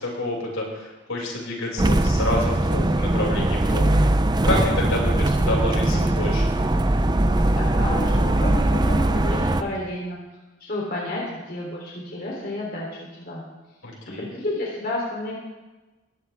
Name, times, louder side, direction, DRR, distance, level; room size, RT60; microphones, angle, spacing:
voice 1, 0.0-4.1 4.4-6.4 13.8-14.3, left 1 dB, 85° left, -3 dB, 6.2 m, -28 dB
sound 1, 1.8-9.6, right 1 dB, 20° right, 0.6 m, -21 dB
voice 2, 7.5-10.2 10.6-12.9 13.2-13.4 14.0-15.4, left 1 dB, 45° left, -3 dB, 3.3 m, -30 dB
20.5 x 15.0 x 3.6 m, 1.1 s
head